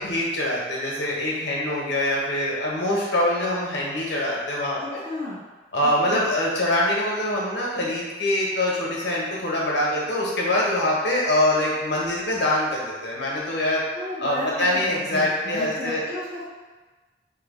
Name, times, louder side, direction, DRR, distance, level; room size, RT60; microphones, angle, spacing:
voice 1, 0.0-5.0 5.7-13.8 14.2-16.0, left 1 dB, 60° left, -4 dB, 0.8 m, -24 dB
voice 2, 4.8-5.4 6.0-6.2 13.9-16.5, left 1 dB, 55° right, -8 dB, 1.0 m, -34 dB
2.8 x 2.2 x 4.0 m, 1.3 s
head